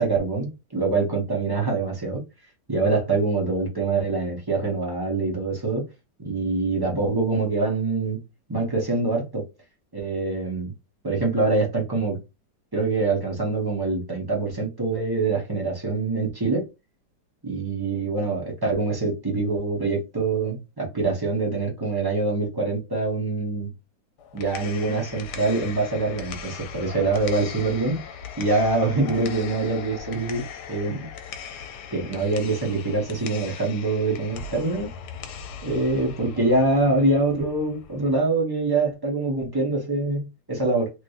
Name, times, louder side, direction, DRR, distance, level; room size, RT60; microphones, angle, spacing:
voice 1, 0.0-2.2 2.7-5.8 6.2-8.2 8.5-9.4 9.9-10.7 11.0-12.2 12.7-16.6 17.4-23.7 24.3-28.0 28.4-30.4 30.7-31.1 31.9-34.9 35.6-40.9, right 3 dB, 30° right, 0.4 m, -24 dB
sound 1, 24.2-38.2, left 7 dB, 70° left, 1.2 m, -39 dB
3.1 x 2.9 x 2.7 m
omnidirectional pair, 1.9 m